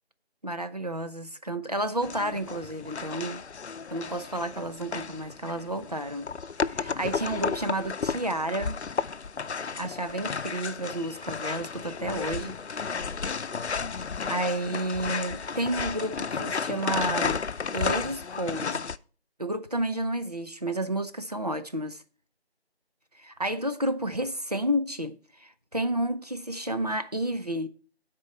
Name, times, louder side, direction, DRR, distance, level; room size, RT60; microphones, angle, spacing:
voice 1, 0.4-3.4 3.9-6.3 6.7-8.8 9.8-12.9 14.3-17.4 17.7-18.8 19.4-22.0 23.2-27.7, right 1 dB, 40° right, 0.6 m, -31 dB
sound 1, 2.0-19.0, left 5 dB, 85° left, 0.6 m, -33 dB
9.3 x 4.5 x 7.2 m
figure-of-eight pair, 170°, 32 cm